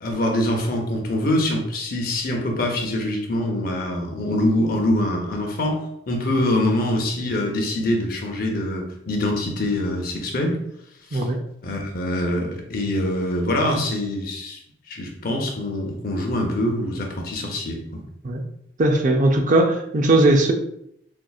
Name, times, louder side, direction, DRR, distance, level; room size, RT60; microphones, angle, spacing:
voice 1, 0.0-10.6 11.1-11.2 11.6-14.6 14.9-18.0, left 1 dB, 50° left, 2 dB, 0.7 m, -24 dB
voice 2, 11.1-11.4 18.2-18.4 18.8-20.5, right 2 dB, 45° right, 3 dB, 0.5 m, -18 dB
4.4 x 2.4 x 2.3 m, 0.76 s
head